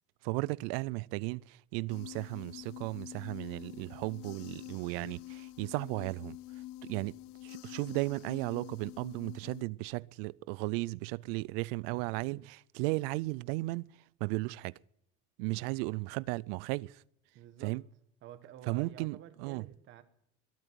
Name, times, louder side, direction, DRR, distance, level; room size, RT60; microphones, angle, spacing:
voice 1, 0.2-6.4 6.8-7.2 7.4-13.9 14.2-14.7 15.4-17.0 17.6-17.8 18.7-19.7, right 23 dB, 90° right, 0.5 m, -35 dB
sound 1, 1.9-9.6, left 16 dB, 55° left, 0.5 m, -47 dB
voice 2, 17.3-17.8 18.2-20.0, right 10 dB, 40° right, 1.4 m, -50 dB
22.5 x 9.0 x 6.3 m
cardioid pair, 165°, 29 cm